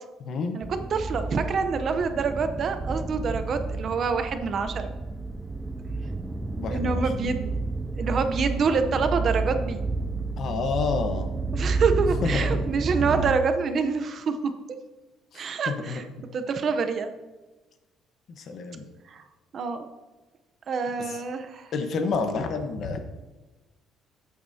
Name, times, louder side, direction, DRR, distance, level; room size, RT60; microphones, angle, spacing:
voice 1, 0.3-0.6 6.5-7.1 10.4-11.3 12.2-12.7 15.3-16.0 18.4-18.8 21.0-21.2 21.7-23.0, left 4 dB, 45° left, 6 dB, 1.0 m, -29 dB
sound 1, 0.6-13.3, right 3 dB, 10° right, 0.4 m, -30 dB
voice 2, 0.9-4.9 6.7-7.5 7.9-9.8 11.5-14.5 15.3-16.0 16.3-17.1 19.1-19.2 19.5-19.9 20.7-21.7, right 5 dB, 35° right, 8 dB, 0.7 m, -26 dB
14.5 x 8.5 x 2.8 m, 1.2 s
cardioid pair, 165°, 0 cm